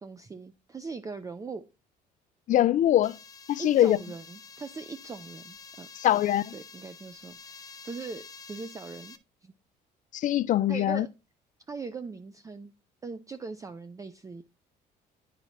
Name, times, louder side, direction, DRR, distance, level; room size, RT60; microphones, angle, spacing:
voice 1, 0.0-1.6 3.6-5.9 6.5-9.2 9.4-9.5 10.7-11.1 11.7-12.7 13.0-14.5, right 4 dB, 20° right, 0.4 m, -40 dB
voice 2, 2.5-3.2 3.5-4.0 6.0-6.5 10.1-11.1, left 12 dB, 50° left, 0.4 m, -23 dB
sound 1, 3.0-9.2, left 5 dB, 20° left, 0.8 m, -48 dB
11.0 x 4.2 x 3.0 m
cardioid pair, 110°, 17 cm